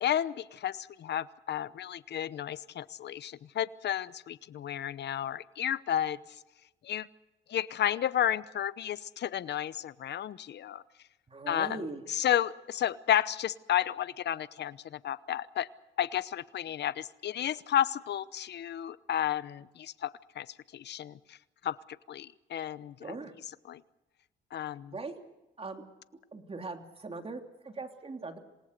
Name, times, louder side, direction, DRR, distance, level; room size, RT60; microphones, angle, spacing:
voice 1, 0.0-6.2 6.8-7.1 7.5-10.8 11.5-15.7 16.0-20.1 20.4-20.5 20.7-21.4 21.6-21.8 22.1-23.2 23.7-23.8 24.5-24.9, left 10 dB, 60° left, 16 dB, 0.9 m, -32 dB
voice 2, 11.3-12.0 23.0-23.3 24.9-25.1 25.6-25.8 26.3-28.4, right 3 dB, 30° right, 5 dB, 3.1 m, -40 dB
27.5 x 18.5 x 6.7 m, 1.0 s
cardioid pair, 90°, 20 cm